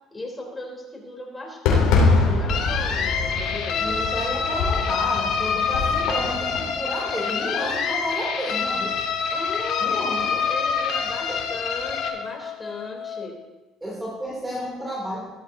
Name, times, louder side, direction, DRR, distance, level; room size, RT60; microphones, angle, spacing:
voice 1, 0.1-4.1 9.3-13.3, left 2 dB, 15° left, -1 dB, 3.5 m, -37 dB
Fireworks, 1.6-6.7, left 3 dB, 90° left, 2.9 m, -24 dB
sound 1, 2.5-12.1, left 6 dB, 70° left, 1.6 m, -26 dB
sound 2, 3.1-13.3, left 8 dB, 45° left, 1.0 m, -37 dB
voice 2, 3.8-9.0 9.8-10.4 11.3-11.4 13.8-15.2, equal, 10° right, -4 dB, 2.9 m, -31 dB
15.5 x 12.5 x 2.8 m, 1.2 s
cardioid pair, 110°, 0 cm